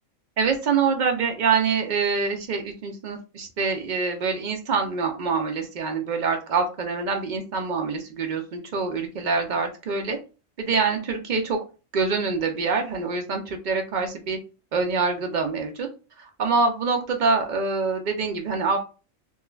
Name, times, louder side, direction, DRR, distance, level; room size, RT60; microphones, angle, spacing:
voice 1, 0.4-10.2 10.6-11.6 11.9-14.4 14.7-15.9 16.2-18.8, right 4 dB, 70° right, 4 dB, 0.4 m, -25 dB
4.3 x 2.2 x 2.3 m, 0.33 s
omnidirectional pair, 1.4 m